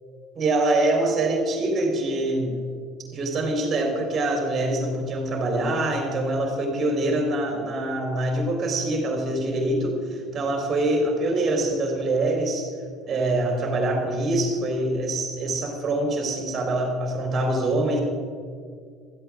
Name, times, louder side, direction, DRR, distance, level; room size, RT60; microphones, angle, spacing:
voice 1, 0.3-2.6 3.1-12.7 13.0-18.0, right 2 dB, 30° right, 1 dB, 3.7 m, -24 dB
16.5 x 13.0 x 3.7 m, 2.1 s
figure-of-eight pair, 65°, 0 cm